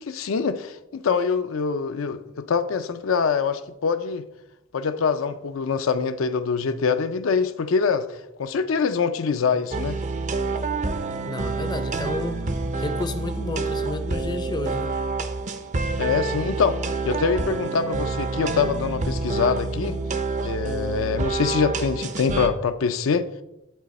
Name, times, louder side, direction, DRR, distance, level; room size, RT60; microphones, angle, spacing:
voice 1, 0.0-4.2 4.7-10.0 16.0-16.8 17.0-20.0 20.4-23.3, left 5 dB, 75° left, 0.4 m, -24 dB
sound 1, 9.7-22.5, right 3 dB, 35° right, 0.5 m, -28 dB
voice 2, 11.3-12.5 12.8-14.9, left 2 dB, 20° left, 0.5 m, -31 dB
10.5 x 4.1 x 4.2 m
head